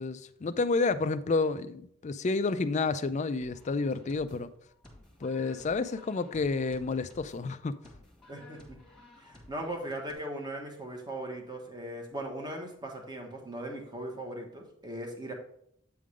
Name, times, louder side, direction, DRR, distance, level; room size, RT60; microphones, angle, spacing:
voice 1, 0.0-4.5 5.2-7.8, left 3 dB, 35° left, 0.4 m, -30 dB
sound 1, 3.4-10.1, left 1 dB, 5° left, 1.6 m, -55 dB
voice 2, 8.3-8.8 9.2-15.3, right 1 dB, 20° right, 1.3 m, -39 dB
8.4 x 3.7 x 4.9 m
head